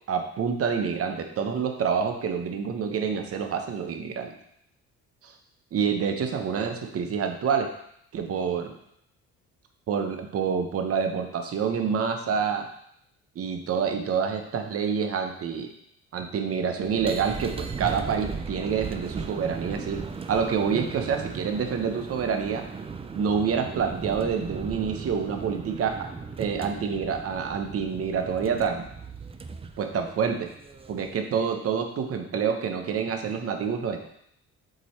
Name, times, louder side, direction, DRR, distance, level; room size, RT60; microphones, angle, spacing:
voice 1, 0.1-4.3 5.2-5.3 5.7-7.7 8.1-8.7 9.9-12.7 13.3-15.7 16.1-22.6 23.1-25.9 26.4-28.9 29.8-30.5 30.9-34.1, right 6 dB, 50° right, 5 dB, 1.0 m, -27 dB
sound 1, 16.8-31.2, right 5 dB, 20° right, 0.5 m, -37 dB
7.7 x 3.1 x 4.3 m, 0.71 s
cardioid pair, 90°, 30 cm